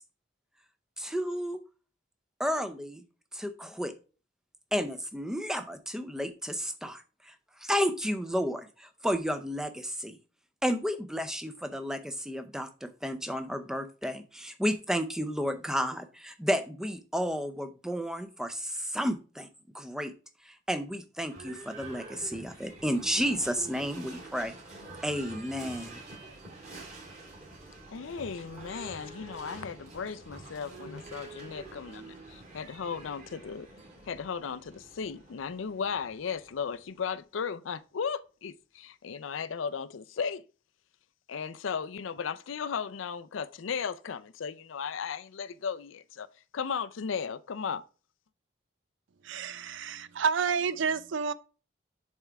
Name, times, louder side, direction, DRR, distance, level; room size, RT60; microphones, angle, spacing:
voice 1, 1.0-1.6 2.4-3.0 3.3-3.9 4.7-10.2 10.6-19.5 19.7-20.1 20.4-24.5 25.0-26.0, equal, 5° right, 0.5 m, -32 dB
Livestock farm animals working animals / Bell, 21.2-37.1, right 2 dB, 35° right, 2.5 m, -47 dB
voice 2, 27.9-33.7 34.1-40.4 41.3-46.3 46.5-47.8, left 6 dB, 85° left, 0.5 m, -36 dB
voice 3, 49.2-51.3, right 6 dB, 75° right, 0.5 m, -29 dB
7.4 x 3.5 x 4.5 m
head